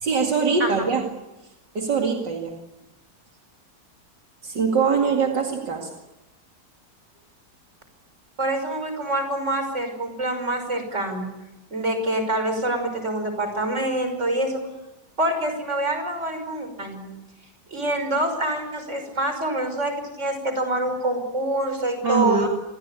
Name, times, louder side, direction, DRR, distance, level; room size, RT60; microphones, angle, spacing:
voice 1, 0.0-1.1 1.7-2.5 4.4-5.9 22.0-22.5, right 5 dB, 75° right, 1 dB, 3.0 m, -22 dB
voice 2, 8.4-11.3 11.7-14.6 15.2-17.0 17.7-22.5, right 1 dB, 40° right, 6 dB, 6.2 m, -26 dB
28.5 x 21.5 x 8.4 m, 0.99 s
omnidirectional pair, 1.9 m